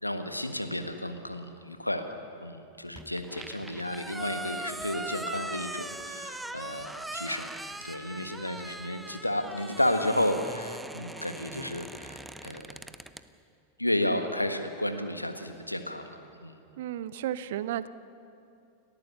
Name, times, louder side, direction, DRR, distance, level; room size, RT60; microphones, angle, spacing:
voice 1, 0.0-7.5 7.8-12.8 13.8-16.1 16.4-16.6, left 1 dB, 85° left, 7 dB, 1.5 m, -32 dB
sound 1, 3.0-13.3, right 1 dB, 5° right, 0.7 m, -41 dB
voice 2, 16.8-17.9, right 11 dB, 55° right, 16 dB, 0.7 m, -33 dB
30.0 x 14.0 x 7.1 m, 2.6 s
figure-of-eight pair, 90°, 0 cm